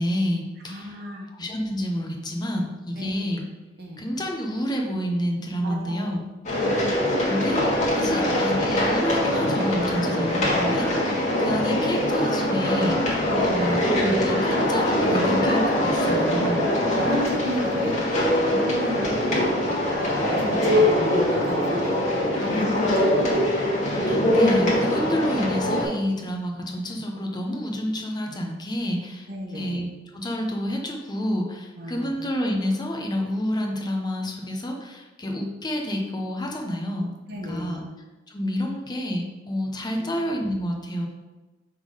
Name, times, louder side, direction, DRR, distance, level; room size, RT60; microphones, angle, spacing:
voice 1, 0.0-0.9 1.3-3.4 4.0-6.2 7.3-7.6 7.9-16.7 24.1-29.3 29.5-29.9 30.1-37.1 37.4-37.8 38.3-41.1, equal, 20° left, 1 dB, 0.7 m, -28 dB
voice 2, 0.7-1.3 3.0-3.3 3.8-4.0 5.6-6.1 8.0-8.3 13.3-13.6 16.4-16.5 16.9-18.0 18.5-19.8 20.4-21.9 22.3-22.6 23.0-23.5 29.3-29.8 31.8-32.1 37.3-37.8 40.0-40.1, equal, 55° right, 0 dB, 1.2 m, -33 dB
sound 1, 6.4-25.8, left 1 dB, 40° left, 1.5 m, -23 dB
5.8 x 3.7 x 4.8 m, 1.1 s
head